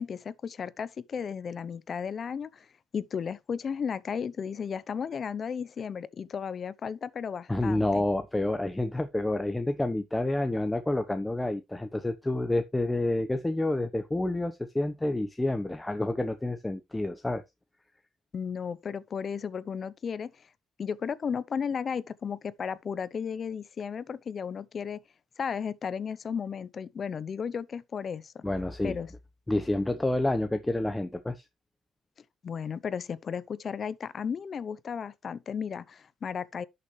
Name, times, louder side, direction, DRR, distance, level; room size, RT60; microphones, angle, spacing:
voice 1, 0.0-2.7 2.9-8.0 18.3-20.5 20.8-25.0 25.4-28.4 28.8-29.1 32.4-36.7, left 6 dB, 50° left, 0.7 m, -34 dB
voice 2, 7.5-17.4 28.4-29.0 29.5-31.4, left 1 dB, 10° left, 0.9 m, -29 dB
11.0 x 6.8 x 3.2 m
cardioid pair, 90°, 0 cm